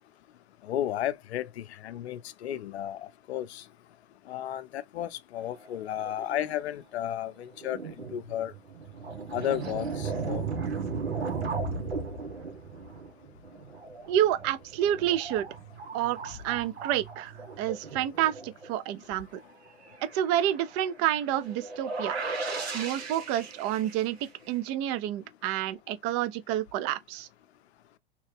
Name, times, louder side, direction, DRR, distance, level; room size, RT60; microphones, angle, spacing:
voice 1, 0.6-3.6 4.3-7.8 8.1-8.5 9.3-10.4, left 11 dB, 85° left, 0.6 m, -33 dB
sound 1, 5.4-6.8 7.3-7.4 7.5-18.9 19.4-19.5 19.7-24.5, right 4 dB, 90° right, 1.6 m, -37 dB
voice 2, 14.1-15.5 15.9-19.4 20.1-22.2 22.7-24.2 24.5-27.3, right 12 dB, 45° right, 0.7 m, -29 dB
3.1 x 2.9 x 3.3 m
hypercardioid pair, 105°, 32 cm